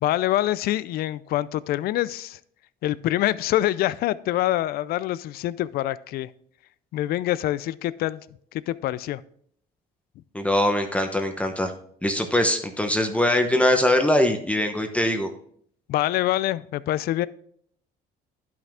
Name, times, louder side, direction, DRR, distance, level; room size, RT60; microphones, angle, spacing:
voice 1, 0.0-2.4 2.8-6.3 6.9-8.2 8.7-9.2 15.9-17.3, left 14 dB, 65° left, 18 dB, 0.4 m, -25 dB
voice 2, 10.3-11.7 12.0-15.3, left 1 dB, 5° left, 5 dB, 0.8 m, -22 dB
11.0 x 6.0 x 3.5 m, 0.63 s
cardioid pair, 110°, 17 cm